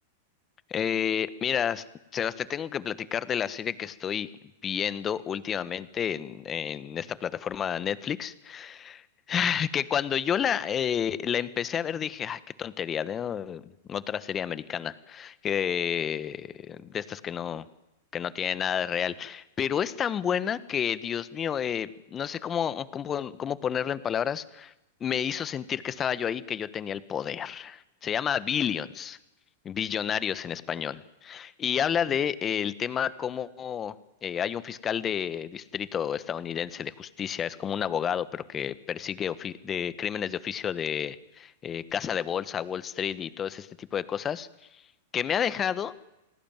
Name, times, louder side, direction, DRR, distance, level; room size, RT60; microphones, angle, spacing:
voice 1, 0.7-1.8 2.1-4.3 4.6-9.0 9.3-17.6 18.1-24.7 25.0-29.2 29.6-33.9 34.2-44.5 45.1-45.9, left 8 dB, 25° left, 15 dB, 1.5 m, -30 dB
29.0 x 19.5 x 9.3 m, 0.95 s
hypercardioid pair, 110°, 0 cm